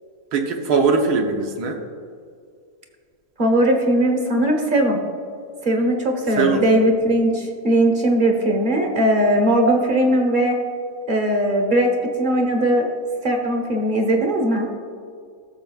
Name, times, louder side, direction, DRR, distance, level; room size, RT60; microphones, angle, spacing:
voice 1, 0.3-1.8 6.4-6.8, right 4 dB, 85° right, 3 dB, 1.5 m, -20 dB
voice 2, 3.4-5.0 5.6-10.6 11.1-11.9 12.2-12.9 13.2-14.7, right 1 dB, 35° right, 2 dB, 1.1 m, -19 dB
16.5 x 6.8 x 2.4 m, 2.2 s
omnidirectional pair, 1.7 m